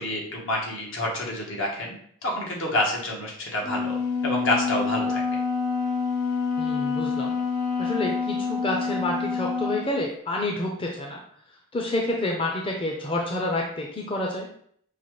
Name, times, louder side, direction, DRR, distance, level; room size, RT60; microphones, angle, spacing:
voice 1, 0.0-2.0 2.2-5.2, left 1 dB, 75° left, -2 dB, 1.3 m, -28 dB
Wind instrument woodwind instrument, 3.6-9.9, left 5 dB, 50° left, 1.0 m, -27 dB
voice 2, 6.6-7.4 7.8-11.2 11.7-14.5, left 1 dB, 25° left, 0 dB, 0.5 m, -28 dB
5.5 x 2.4 x 3.1 m, 0.64 s
head